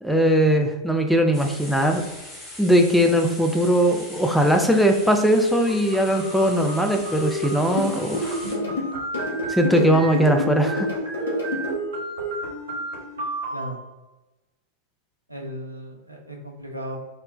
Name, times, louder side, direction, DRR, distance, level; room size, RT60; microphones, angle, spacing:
voice 1, 0.0-2.0 2.6-8.4 9.5-10.9, equal, ahead, 4 dB, 0.3 m, -20 dB
sound 1, 1.3-8.5, left 1 dB, 20° left, 0.9 m, -41 dB
sound 2, 5.7-13.7, right 2 dB, 65° right, 0.9 m, -32 dB
sound 3, 7.8-11.7, left 2 dB, 65° left, 0.7 m, -27 dB
voice 2, 15.3-17.0, right 1 dB, 85° right, 2 dB, 0.4 m, -35 dB
2.3 x 2.1 x 3.0 m, 1.1 s
figure-of-eight pair, 90°, 0 cm